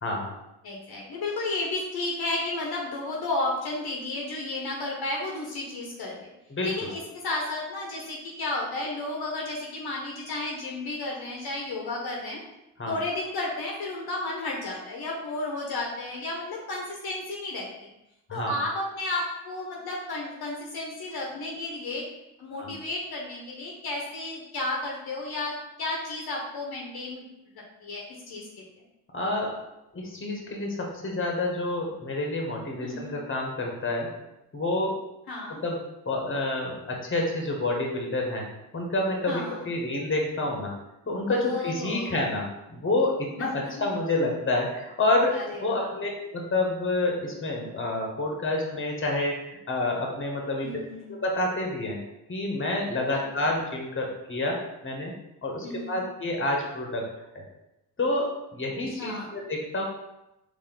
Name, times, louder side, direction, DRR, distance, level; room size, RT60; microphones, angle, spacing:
voice 1, 0.6-6.3 6.6-12.4 12.8-17.9 18.3-22.0 22.4-27.2 27.8-28.7 32.8-33.2 35.3-35.6 39.3-39.7 41.3-42.2 43.4-43.9 45.3-45.9 50.6-51.1 53.1-53.2 55.6-56.0 58.9-59.3, left 2 dB, 60° left, -2 dB, 1.1 m, -33 dB
voice 2, 6.5-6.9 12.8-12.9 18.3-18.6 22.6-22.7 29.1-29.5 29.9-34.1 34.5-35.0 35.6-38.5 38.7-40.7 41.1-50.8 51.1-52.0 52.3-55.1 55.4-57.1 57.3-57.4 58.0-59.8, left 2 dB, 30° left, 0 dB, 1.4 m, -28 dB
4.2 x 2.9 x 3.9 m, 0.90 s
hypercardioid pair, 50°, 43 cm